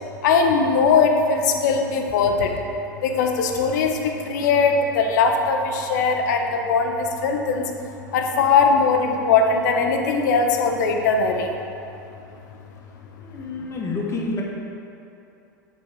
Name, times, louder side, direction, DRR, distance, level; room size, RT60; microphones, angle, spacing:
voice 1, 0.2-2.5 3.0-7.7 8.1-11.5, left 5 dB, 60° left, 3 dB, 0.7 m, -20 dB
voice 2, 13.2-14.4, left 3 dB, 25° left, -2 dB, 1.2 m, -28 dB
7.0 x 4.1 x 4.9 m, 2.8 s
figure-of-eight pair, 80°, 11 cm